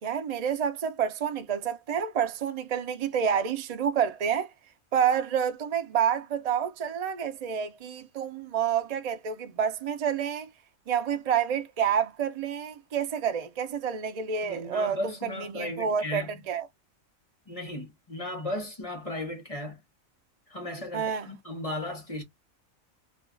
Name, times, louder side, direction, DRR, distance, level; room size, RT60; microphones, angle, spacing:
voice 1, 0.0-4.5 4.9-10.5 10.9-16.7 20.9-21.3, right 8 dB, 50° right, 0.4 m, -28 dB
voice 2, 14.4-16.3 17.5-19.8 20.5-22.2, left 1 dB, 30° left, 0.9 m, -35 dB
2.5 x 2.3 x 3.7 m
omnidirectional pair, 1.4 m